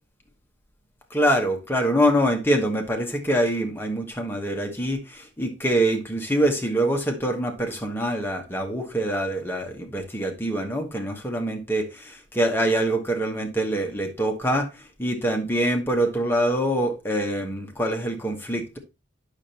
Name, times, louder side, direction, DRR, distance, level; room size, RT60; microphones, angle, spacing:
voice 1, 1.1-11.9 12.3-14.7 15.0-18.8, right 1 dB, 10° left, 1.1 m, -24 dB
8.6 x 6.4 x 2.8 m
head